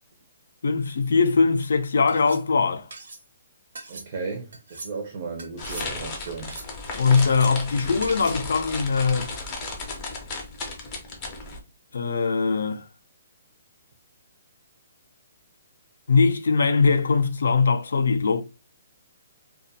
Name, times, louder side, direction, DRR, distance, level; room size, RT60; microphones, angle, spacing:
voice 1, 0.6-2.9 6.9-9.3 11.9-12.8 16.1-18.4, left 4 dB, 85° left, 0.4 m, -21 dB
sound 1, 1.5-1.7 2.1-2.4 2.9-3.2 3.7-4.1 4.5-4.9 5.4-5.9 6.3-6.8 7.2-7.5 8.0-8.4, right 3 dB, 75° right, 0.7 m, -41 dB
voice 2, 3.9-6.5, right 4 dB, 35° right, 0.5 m, -35 dB
sound 2, 5.6-11.6, left 3 dB, 20° left, 0.5 m, -35 dB
2.4 x 2.2 x 2.6 m
hypercardioid pair, 175°, 0 cm